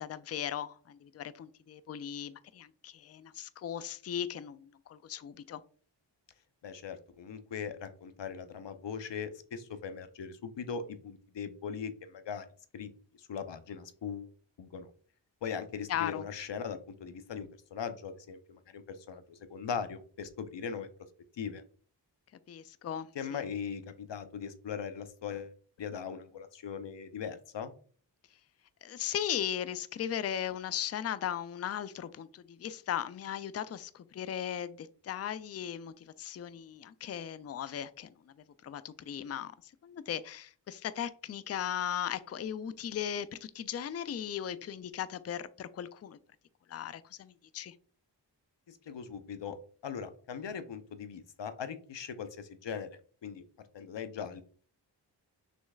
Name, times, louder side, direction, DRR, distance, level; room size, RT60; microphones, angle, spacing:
voice 1, 0.0-5.6 15.9-16.3 22.5-23.4 28.8-38.3 38.6-46.2 46.7-47.7, left 9 dB, 35° left, 0.4 m, -37 dB
voice 2, 6.6-12.5 12.7-12.9 13.2-14.3 14.6-14.9 15.4-20.9 21.3-21.6 23.1-27.7 48.7-49.6 49.8-53.4 53.7-54.4, left 6 dB, 70° left, 0.7 m, -40 dB
6.2 x 3.2 x 2.4 m
cardioid pair, 45°, 45 cm